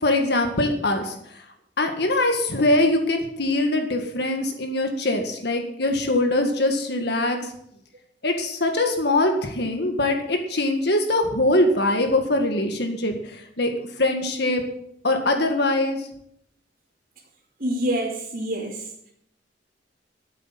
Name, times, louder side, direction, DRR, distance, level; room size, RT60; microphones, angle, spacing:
voice 1, 0.0-1.4 1.8-7.5 8.2-13.7 14.0-14.6 15.0-16.1, left 2 dB, 65° left, 4 dB, 1.8 m, -22 dB
voice 2, 17.6-18.9, right 1 dB, 50° right, -5 dB, 2.7 m, -26 dB
14.5 x 8.0 x 7.5 m, 0.72 s
head